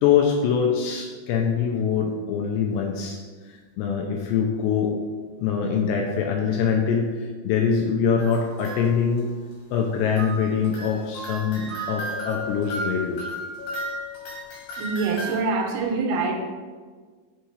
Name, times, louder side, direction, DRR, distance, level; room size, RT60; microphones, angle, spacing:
voice 1, 0.0-4.9 5.4-9.3 9.7-13.3, left 6 dB, 80° left, 1 dB, 2.6 m, -24 dB
sound 1, 8.2-9.2 10.2-15.4, equal, 60° left, 2.8 m, -34 dB
voice 2, 14.8-16.4, right 4 dB, 80° right, 2 dB, 3.0 m, -25 dB
6.9 x 5.6 x 3.1 m, 1.5 s
omnidirectional pair, 5.4 m